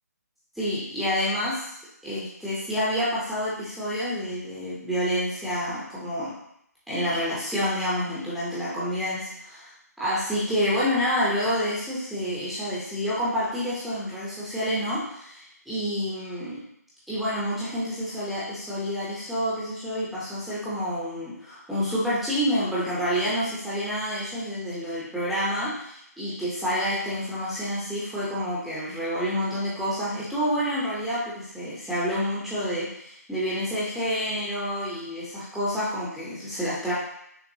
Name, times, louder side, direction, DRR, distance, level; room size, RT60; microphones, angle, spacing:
voice 1, 0.5-1.7 2.0-6.3 6.9-9.7 10.0-16.6 17.1-36.9, equal, ahead, -11 dB, 0.6 m, -28 dB
6.0 x 2.3 x 2.7 m, 0.73 s
figure-of-eight pair, 155°, 9 cm